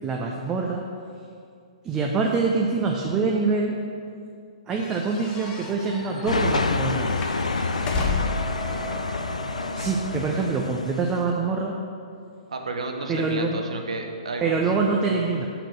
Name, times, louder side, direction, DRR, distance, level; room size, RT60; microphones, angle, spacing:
voice 1, 0.0-0.9 1.8-3.8 4.7-7.1 9.7-11.8 13.1-13.6 14.4-15.5, right 4 dB, 20° right, 0 dB, 0.6 m, -25 dB
sound 1, 4.8-8.5, left 3 dB, 25° left, 0.9 m, -32 dB
sound 2, 5.1-11.3, right 1 dB, 5° left, 1.3 m, -40 dB
sound 3, 6.3-11.2, left 4 dB, 80° left, 0.4 m, -28 dB
voice 2, 12.5-14.6, right 3 dB, 70° right, 3 dB, 1.1 m, -32 dB
6.5 x 5.9 x 6.7 m, 2.3 s
figure-of-eight pair, 120°, 4 cm